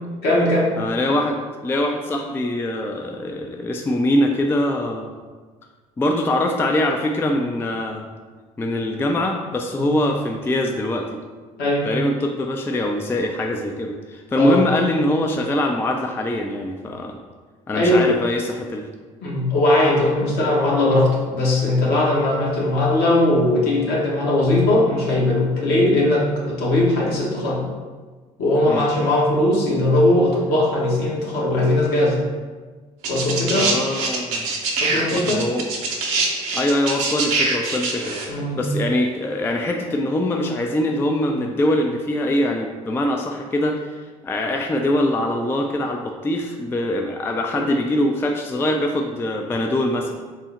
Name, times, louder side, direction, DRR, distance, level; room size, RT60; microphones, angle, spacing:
voice 1, 0.2-0.8 9.8-10.0 11.6-11.9 14.3-14.6 17.7-18.1 19.2-27.7 28.4-32.2 33.1-33.8 34.8-35.5 38.3-38.6 47.5-47.6, left 1 dB, 60° left, -4 dB, 1.1 m, -19 dB
voice 2, 0.8-5.1 6.0-8.1 8.6-11.1 11.8-17.2 17.7-18.8 28.7-28.9 33.5-34.5 35.1-35.7 36.5-38.2 38.5-50.1, left 1 dB, 15° left, 3 dB, 0.3 m, -23 dB
sound 1, 33.0-38.2 39.3-39.4, right 3 dB, 70° right, 0.7 m, -23 dB
3.7 x 2.0 x 4.0 m, 1.4 s
hypercardioid pair, 60°, 18 cm